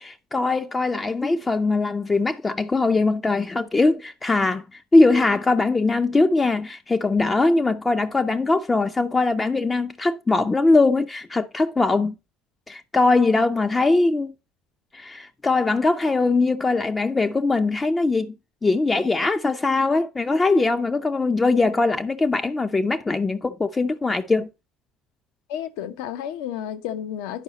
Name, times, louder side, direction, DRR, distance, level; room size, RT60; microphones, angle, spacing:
voice 1, 0.0-12.1 12.7-14.3 14.9-18.3 18.6-24.5, left 3 dB, 20° left, 0.6 m, -21 dB
voice 2, 25.5-27.4, left 10 dB, 65° left, 0.9 m, -31 dB
10.0 x 5.5 x 4.0 m
figure-of-eight pair, 60°, 0 cm